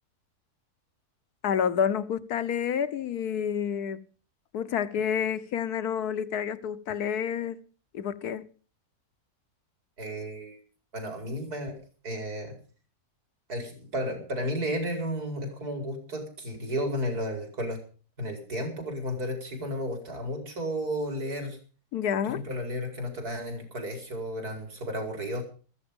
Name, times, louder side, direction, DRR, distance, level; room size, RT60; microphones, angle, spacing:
voice 1, 1.4-4.0 4.5-7.6 7.9-8.5 21.9-22.4, left 8 dB, 85° left, 1.5 m, -29 dB
voice 2, 10.0-10.6 10.9-11.8 12.0-12.6 13.5-17.8 18.2-21.6 22.3-25.4, equal, 85° right, 5.5 m, -33 dB
15.0 x 14.5 x 5.3 m
omnidirectional pair, 1.6 m